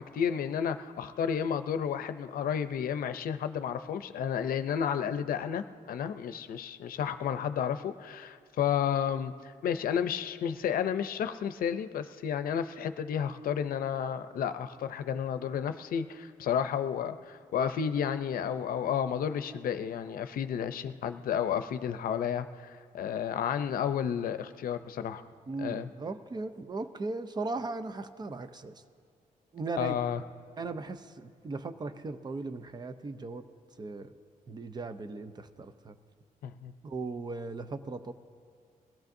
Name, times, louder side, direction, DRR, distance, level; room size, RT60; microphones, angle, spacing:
voice 1, 0.0-25.2 25.6-25.9 29.8-30.2 36.4-36.7, left 8 dB, 85° left, 10 dB, 0.6 m, -32 dB
voice 2, 25.5-28.7 29.5-30.0 30.6-33.4 33.8-34.1 34.5-36.0 36.8-38.1, right 3 dB, 30° right, 10 dB, 0.6 m, -37 dB
22.0 x 15.5 x 2.7 m, 2.2 s
cardioid pair, 125°, 15 cm